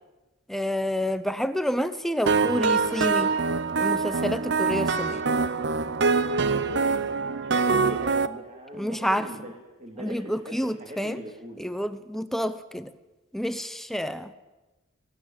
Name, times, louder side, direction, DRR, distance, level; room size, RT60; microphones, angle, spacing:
voice 1, 0.5-3.3 3.8-5.2 8.8-9.3 10.0-11.2 11.6-12.9 13.3-14.3, equal, ahead, 11 dB, 0.7 m, -29 dB
sound 1, 2.3-8.3, right 4 dB, 60° right, 0.8 m, -24 dB
voice 2, 6.4-7.0 7.4-9.5 9.8-11.6, right 1 dB, 40° right, 1 dB, 2.6 m, -40 dB
19.5 x 16.5 x 8.9 m, 1.1 s
head